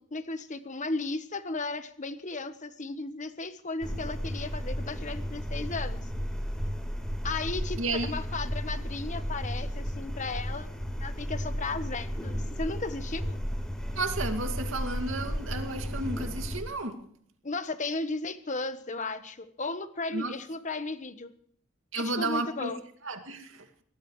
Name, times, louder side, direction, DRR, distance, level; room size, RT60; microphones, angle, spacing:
voice 1, 0.0-6.0 7.2-10.7 11.0-13.4 17.4-21.3 22.0-22.8, left 3 dB, 40° left, 10 dB, 1.3 m, -35 dB
sound 1, 3.8-16.6, equal, 5° left, 4.1 m, -34 dB
voice 2, 7.8-8.1 13.9-17.0 20.1-20.3 21.9-23.7, right 2 dB, 80° right, 5 dB, 2.5 m, -32 dB
23.5 x 19.0 x 3.3 m, 0.65 s
head